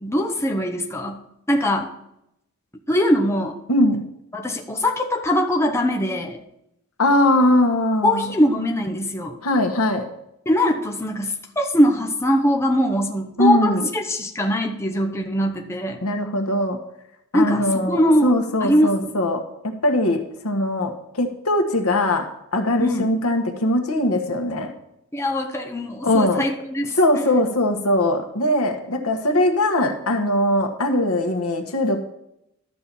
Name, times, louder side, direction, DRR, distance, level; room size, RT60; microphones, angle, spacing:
voice 1, 0.0-1.2 1.5-1.9 2.9-3.6 4.3-6.4 8.0-9.4 10.5-16.0 17.3-18.3 18.6-19.1 22.8-23.1 25.1-27.0, equal, 10° left, 2 dB, 0.8 m, -21 dB
voice 2, 3.7-4.0 7.0-8.3 9.4-10.1 13.4-13.8 16.0-16.8 17.3-22.3 22.5-24.7 26.0-26.5 26.9-32.0, left 1 dB, 85° left, 4 dB, 1.4 m, -21 dB
12.0 x 4.4 x 6.9 m, 0.81 s
head